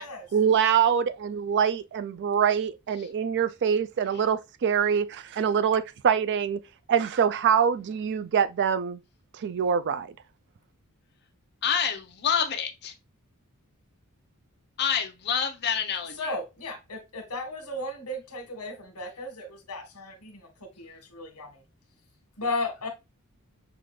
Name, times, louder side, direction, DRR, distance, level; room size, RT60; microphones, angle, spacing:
voice 1, 0.3-6.6 6.9-9.0 9.4-10.1, right 7 dB, 50° right, 0.3 m, -24 dB
voice 2, 11.6-12.9 14.8-16.3, left 7 dB, 50° left, 0.7 m, -28 dB
voice 3, 16.2-21.6 22.4-22.9, left 2 dB, 80° left, 1.4 m, -35 dB
5.8 x 2.4 x 3.1 m
head